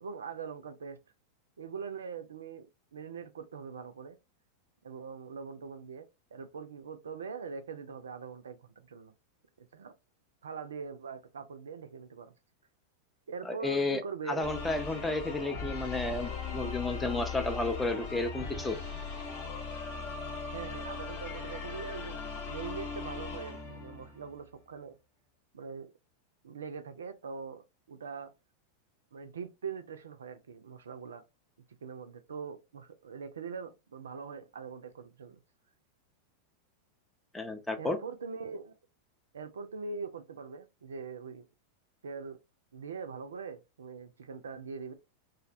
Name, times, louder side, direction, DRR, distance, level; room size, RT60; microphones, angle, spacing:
voice 1, 0.0-1.0 1.6-2.7 2.9-4.2 4.8-6.1 6.3-9.1 9.6-9.9 10.4-12.3 13.3-14.5 20.5-22.2 22.5-25.0 25.5-25.9 26.4-28.3 29.1-31.2 31.8-35.4 37.8-38.7 39.3-41.5 42.0-42.4 42.7-44.9, right 5 dB, 65° right, 0.3 m, -42 dB
voice 2, 13.5-14.0 14.3-18.8 37.3-38.0, left 2 dB, 10° left, 0.4 m, -32 dB
sound 1, 14.4-24.4, left 5 dB, 45° left, 0.7 m, -39 dB
2.5 x 2.1 x 2.4 m
figure-of-eight pair, 90°, 0 cm